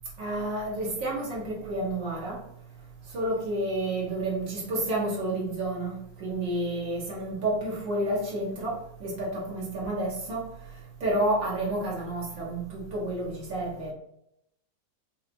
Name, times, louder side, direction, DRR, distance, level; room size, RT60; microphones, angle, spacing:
voice 1, 0.2-2.4 3.1-10.4 11.0-13.9, right 1 dB, 80° right, -5 dB, 2.4 m, -30 dB
6.2 x 2.8 x 3.0 m, 0.77 s
omnidirectional pair, 1.9 m